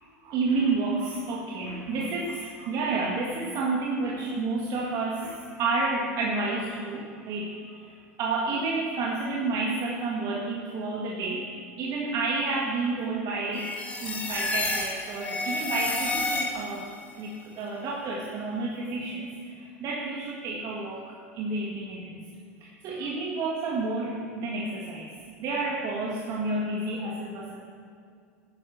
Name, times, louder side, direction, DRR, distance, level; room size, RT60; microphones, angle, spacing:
voice 1, 0.2-16.9 17.2-22.2 22.6-25.1 25.4-27.6, right 3 dB, 50° right, -3 dB, 1.9 m, -30 dB
sound 1, 13.5-16.9, left 2 dB, 20° left, 1.7 m, -30 dB
11.0 x 9.7 x 6.0 m, 2.3 s
hypercardioid pair, 85°, 8 cm